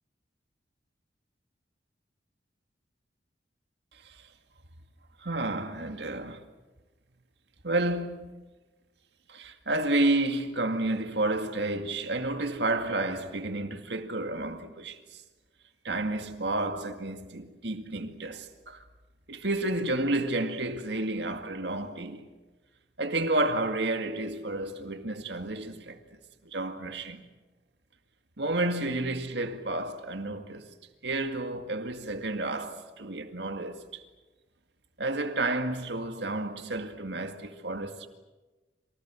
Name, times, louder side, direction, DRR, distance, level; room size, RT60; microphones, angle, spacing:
voice 1, 5.2-6.4 7.6-8.4 9.3-15.0 15.8-18.8 19.3-22.3 23.0-26.0 26.4-27.2 28.4-30.7 31.0-34.0 35.0-38.1, right 2 dB, 70° right, 2.1 m, -31 dB
28.0 x 27.0 x 6.2 m
head